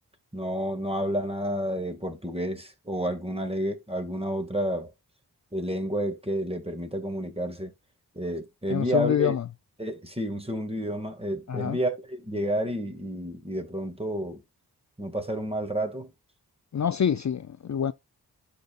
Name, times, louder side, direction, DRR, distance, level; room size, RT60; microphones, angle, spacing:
voice 1, 0.3-4.9 5.5-7.7 8.1-9.3 9.8-14.4 15.0-16.1, equal, 15° right, 2.1 m, -30 dB
voice 2, 8.7-9.5 11.5-11.8 16.7-17.9, left 8 dB, 45° left, 0.5 m, -26 dB
11.5 x 5.5 x 2.5 m
cardioid pair, 50°, 40 cm